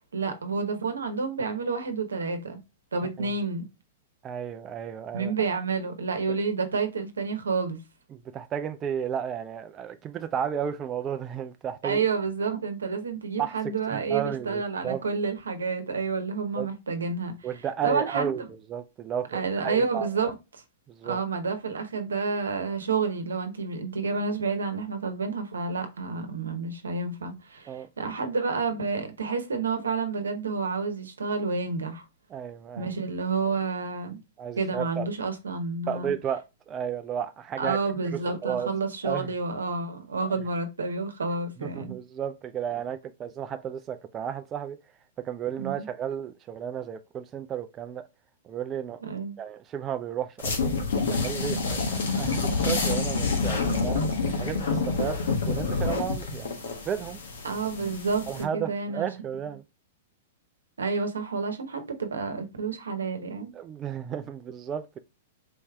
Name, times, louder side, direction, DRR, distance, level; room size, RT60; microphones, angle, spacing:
voice 1, 0.1-2.6 2.9-3.6 5.1-7.8 11.8-17.3 17.8-18.5 19.3-20.3 21.0-32.0 32.8-34.2 34.6-36.1 37.6-42.0 45.6-45.9 49.0-49.4 57.4-59.1 60.8-63.5, right 4 dB, 85° right, 0.9 m, -29 dB
voice 2, 4.2-5.3 8.1-12.0 13.4-13.6 13.9-15.0 16.6-16.7 17.4-18.4 18.7-20.1 20.9-21.2 27.7-27.9 32.3-32.9 34.4-35.1 35.9-37.8 38.1-38.7 39.0-39.3 40.2-40.3 41.6-44.8 45.2-48.0 48.4-49.0 49.4-50.7 51.1-54.0 54.4-55.2 55.4-56.6 56.8-57.2 58.3-59.6 63.5-65.0, right 9 dB, 25° right, 0.4 m, -33 dB
sound 1, 50.4-58.4, left 4 dB, 70° left, 1.0 m, -28 dB
4.2 x 3.2 x 2.3 m
hypercardioid pair, 110°, 0 cm